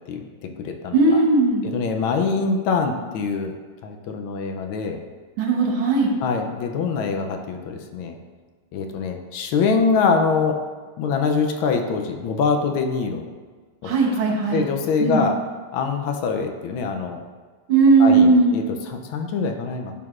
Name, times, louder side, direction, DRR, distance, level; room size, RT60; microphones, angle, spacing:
voice 1, 0.1-1.2 1.7-3.5 3.8-5.0 6.2-8.2 8.7-10.6 11.0-13.2 13.8-13.9 14.5-15.3 15.7-17.2 18.0-19.9, left 5 dB, 80° left, 4 dB, 1.5 m, -24 dB
voice 2, 0.9-1.7 5.4-6.2 13.8-14.6 15.0-15.3 17.7-18.6, right 3 dB, 80° right, -2 dB, 1.9 m, -17 dB
10.5 x 4.7 x 2.5 m, 1.4 s
omnidirectional pair, 2.2 m